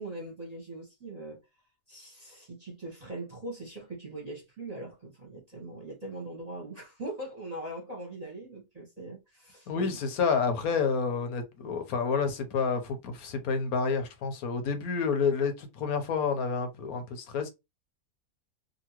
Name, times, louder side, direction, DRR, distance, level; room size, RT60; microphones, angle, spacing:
voice 1, 0.0-1.4 1.9-10.0, right 2 dB, 30° right, 0.9 m, -41 dB
voice 2, 9.7-17.5, left 5 dB, 80° left, 1.2 m, -29 dB
2.8 x 2.7 x 2.9 m
omnidirectional pair, 1.5 m